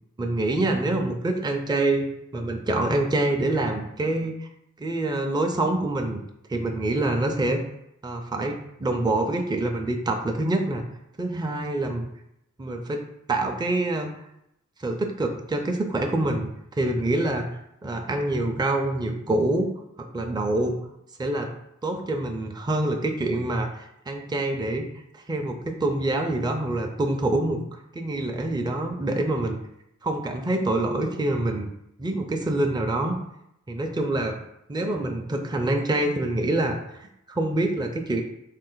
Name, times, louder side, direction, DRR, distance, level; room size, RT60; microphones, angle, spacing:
voice 1, 0.2-4.5 4.8-6.2 6.5-7.6 8.0-10.8 11.2-12.1 12.6-14.1 14.8-19.7 20.0-20.8 21.2-21.5 21.8-29.6 30.0-31.7 32.0-33.2 33.7-34.4 34.7-38.2, right 2 dB, 15° right, 4 dB, 0.4 m, -26 dB
3.2 x 2.4 x 3.8 m, 0.80 s
cardioid pair, 50°, 30 cm